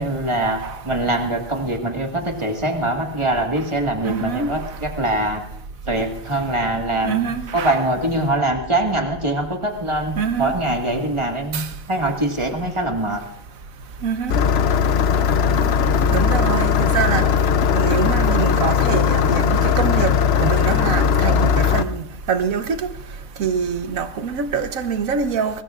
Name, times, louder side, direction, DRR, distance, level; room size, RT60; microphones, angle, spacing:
voice 1, 0.0-5.4 5.9-13.2 15.5-15.7, right 1 dB, 20° right, 1.8 m, -23 dB
voice 2, 4.0-4.5 7.0-7.8 10.2-10.5 11.5-11.7 14.0-14.4 16.1-17.3 17.7-22.9 23.4-25.6, right 6 dB, 85° right, 1.4 m, -24 dB
Engine starting, 14.3-21.8, left 6 dB, 60° left, 0.8 m, -18 dB
23.0 x 20.5 x 2.5 m
omnidirectional pair, 1.4 m